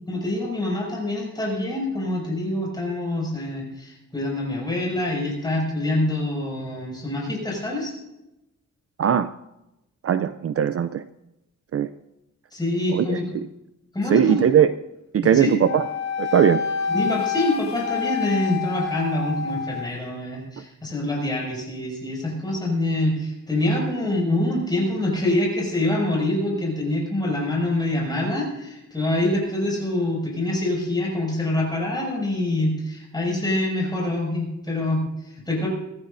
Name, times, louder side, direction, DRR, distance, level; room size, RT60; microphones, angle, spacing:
voice 1, 0.0-7.9 12.5-13.2 13.9-14.3 15.3-15.5 16.9-35.7, left 1 dB, 15° left, -3 dB, 5.9 m, -25 dB
voice 2, 9.0-9.3 10.0-11.0 11.7-11.9 12.9-13.5 14.0-14.7 15.1-15.9 16.2-16.6, right 9 dB, 50° right, 12 dB, 0.5 m, -20 dB
Wind instrument woodwind instrument, 15.6-19.9, left 6 dB, 65° left, 1.1 m, -28 dB
23.0 x 14.0 x 2.6 m, 0.93 s
wide cardioid pair, 175°, 30 cm